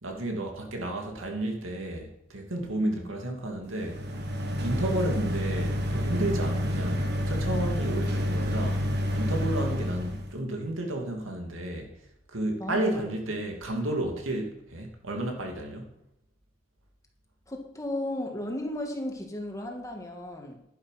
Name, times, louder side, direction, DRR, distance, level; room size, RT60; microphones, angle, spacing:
voice 1, 0.0-4.0 4.6-8.8 9.1-12.0 12.3-15.9, right 1 dB, 75° right, 2.5 m, -32 dB
sound 1, 3.7-10.3, equal, 55° right, 1.7 m, -29 dB
voice 2, 12.6-13.3 17.5-20.6, left 1 dB, 15° left, 1.8 m, -35 dB
11.0 x 10.5 x 5.8 m
head